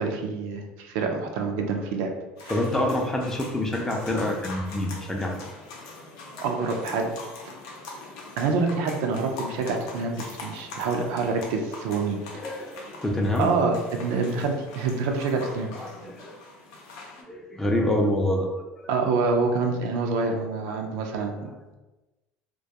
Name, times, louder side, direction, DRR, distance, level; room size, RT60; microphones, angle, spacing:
voice 1, 0.0-2.1 2.4-2.6 6.4-7.2 8.4-12.2 13.4-15.7 18.9-21.5, right 4 dB, 75° right, 3 dB, 0.4 m, -26 dB
sound 1, 2.4-17.2, left 3 dB, 80° left, 0.5 m, -42 dB
voice 2, 2.5-5.4 6.3-6.9 11.0-11.1 12.3-13.5 15.7-16.3 17.3-18.6 21.1-21.2, left 1 dB, 10° left, 1 dB, 0.4 m, -27 dB
2.2 x 2.2 x 2.7 m, 1.1 s
supercardioid pair, 105°, 4 cm